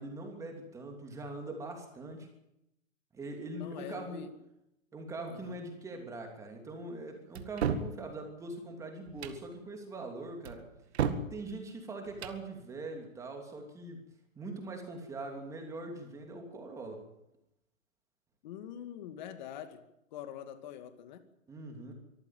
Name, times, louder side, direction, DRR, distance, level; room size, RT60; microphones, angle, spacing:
voice 1, 0.0-2.3 3.1-4.3 4.9-10.7 11.3-14.0 14.4-17.1 21.5-21.9, right 2 dB, 5° right, 3 dB, 2.9 m, -42 dB
voice 2, 3.6-4.3 5.3-5.6 18.4-19.8 20.1-21.2, left 10 dB, 35° left, 10 dB, 2.2 m, -44 dB
sound 1, 7.3-7.9 9.1-9.4 10.4-11.3 12.1-12.4, right 7 dB, 50° right, 2.1 m, -33 dB
24.0 x 14.5 x 9.0 m, 0.83 s
hypercardioid pair, 165°, 41 cm